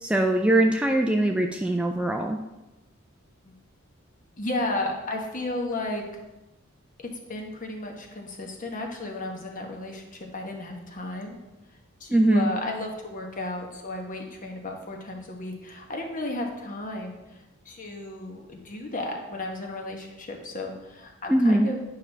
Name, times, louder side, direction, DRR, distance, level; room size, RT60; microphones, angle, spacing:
voice 1, 0.0-2.4 12.1-12.5 21.3-21.7, right 1 dB, 5° right, 3 dB, 0.3 m, -21 dB
voice 2, 4.4-6.0 7.0-11.4 12.0-17.4 17.6-21.9, left 2 dB, 40° left, 2 dB, 1.2 m, -34 dB
9.4 x 5.7 x 3.4 m, 1.0 s
head